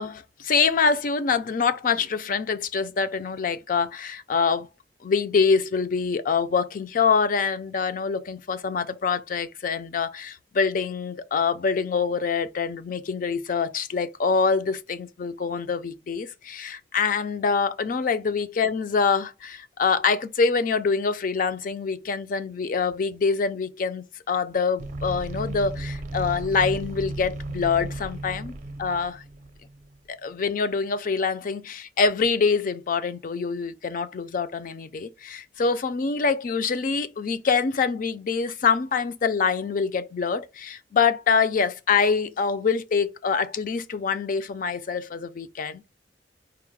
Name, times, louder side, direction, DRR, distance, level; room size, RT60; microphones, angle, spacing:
voice 1, 0.0-4.7 5.0-29.2 30.1-45.9, left 5 dB, 50° left, 0.4 m, -25 dB
sound 1, 24.8-30.0, right 2 dB, 45° right, 0.5 m, -35 dB
4.7 x 2.1 x 4.6 m
head